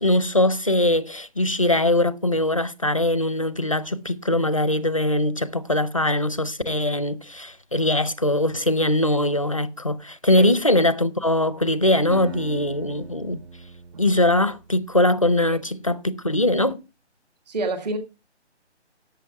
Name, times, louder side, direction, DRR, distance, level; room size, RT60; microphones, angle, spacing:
voice 1, 0.0-13.4 14.0-16.8, left 1 dB, 30° left, 0.4 m, -21 dB
Acoustic guitar, 12.1-15.1, right 2 dB, 65° right, 1.3 m, -40 dB
voice 2, 17.5-18.0, right 2 dB, 35° right, 1.6 m, -28 dB
11.0 x 7.9 x 4.5 m
hypercardioid pair, 170°, 35 cm